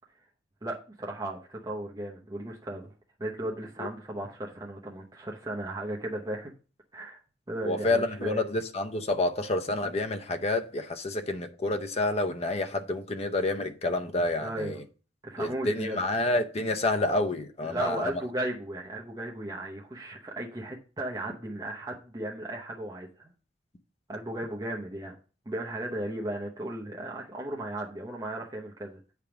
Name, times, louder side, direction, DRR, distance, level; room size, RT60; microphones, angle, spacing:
voice 1, 0.6-2.9 3.2-6.5 6.9-7.2 7.5-8.4 14.4-14.8 15.2-16.0 17.7-23.3 24.1-25.1 25.5-29.0, right 1 dB, 20° right, 0.9 m, -35 dB
voice 2, 7.6-14.8 15.4-18.1, left 2 dB, 35° left, 0.7 m, -29 dB
9.0 x 3.5 x 5.9 m
head